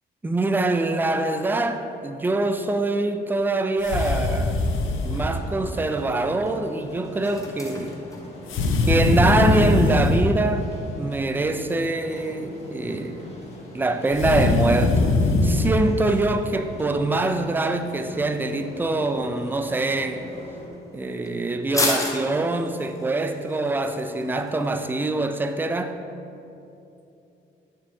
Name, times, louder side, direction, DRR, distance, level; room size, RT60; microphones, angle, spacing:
voice 1, 0.2-4.6 5.0-8.0 8.9-10.7 11.0-13.3 13.7-15.0 15.4-20.3 20.9-26.0, right 2 dB, 10° right, 0.3 m, -24 dB
sound 1, 3.8-5.3 8.5-10.3 14.1-15.8, left 2 dB, 85° left, 0.6 m, -21 dB
sound 2, 4.3-20.7, left 1 dB, 30° left, 1.2 m, -42 dB
sound 3, 5.3-24.9, left 2 dB, 15° left, 0.9 m, -38 dB
6.7 x 6.3 x 2.7 m
cardioid pair, 90°, 20 cm